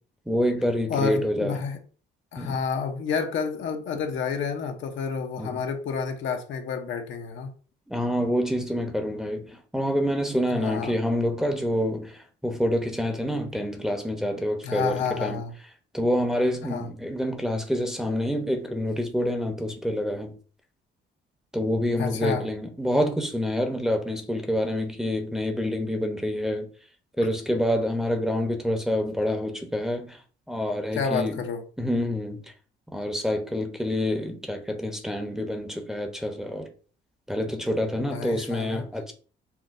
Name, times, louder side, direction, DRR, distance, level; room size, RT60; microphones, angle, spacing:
voice 1, 0.3-1.6 2.4-2.6 5.4-5.6 7.9-15.4 15.9-20.3 21.5-26.7 27.2-30.2 30.5-31.4 31.8-32.4 32.9-36.7 37.3-39.1, equal, 5° right, 0.7 m, -27 dB
voice 2, 0.9-1.8 2.3-7.5 10.5-11.0 14.6-15.5 16.6-16.9 22.0-22.4 30.9-31.6 38.0-38.8, left 5 dB, 75° left, 0.7 m, -29 dB
5.7 x 2.2 x 2.5 m
cardioid pair, 90°, 20 cm